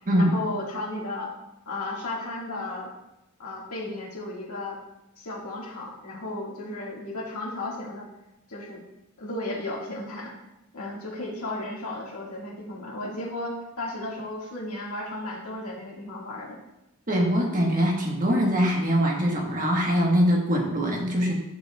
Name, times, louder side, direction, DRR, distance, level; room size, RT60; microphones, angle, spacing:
voice 1, 0.2-1.3 1.7-2.9 3.4-4.8 5.2-8.1 8.5-8.8 9.2-10.3 10.7-16.6, left 2 dB, 75° left, -3 dB, 1.9 m, -34 dB
voice 2, 17.1-21.3, equal, 35° right, 0 dB, 1.4 m, -23 dB
11.5 x 5.2 x 2.3 m, 0.91 s
head